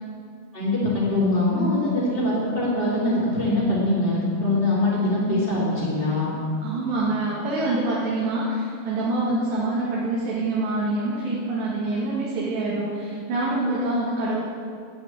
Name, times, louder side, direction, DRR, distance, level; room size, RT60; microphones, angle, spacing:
voice 1, 0.5-6.3, left 2 dB, 15° right, -7 dB, 2.9 m, -23 dB
voice 2, 6.6-14.4, right 2 dB, 65° right, -6 dB, 3.7 m, -25 dB
12.0 x 9.2 x 9.1 m, 2.3 s
omnidirectional pair, 5.9 m